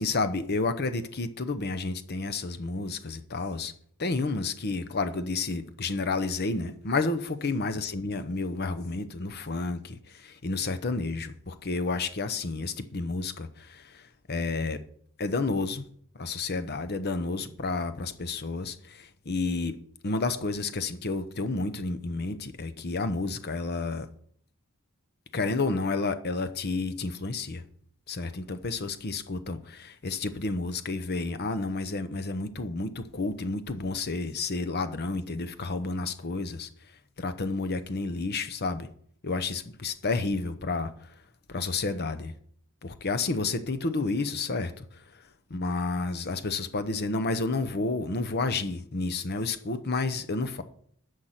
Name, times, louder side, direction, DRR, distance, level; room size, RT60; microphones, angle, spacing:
voice 1, 0.0-3.7 4.0-14.8 15.2-15.9 16.1-19.7 20.0-24.1 25.3-27.6 28.1-36.9 37.2-38.9 39.2-41.2 41.5-42.3 42.8-50.6, left 3 dB, 50° left, 0.9 m, -31 dB
10.5 x 6.6 x 5.8 m
head